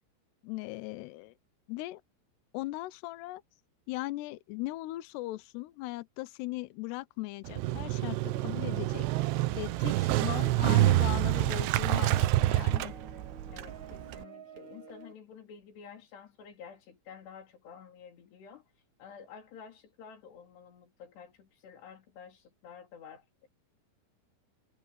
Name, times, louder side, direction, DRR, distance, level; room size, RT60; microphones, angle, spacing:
voice 1, 0.4-1.3 1.7-2.0 2.5-3.4 3.9-9.0 9.5-12.9, left 19 dB, 85° left, 2.4 m, -38 dB
Motorcycle, 7.5-14.2, right 17 dB, 85° right, 2.4 m, -27 dB
sound 1, 8.3-15.1, right 3 dB, 45° right, 3.3 m, -50 dB
voice 2, 13.5-18.7 19.0-23.5, left 7 dB, 60° left, 5.2 m, -51 dB
omnidirectional pair, 5.8 m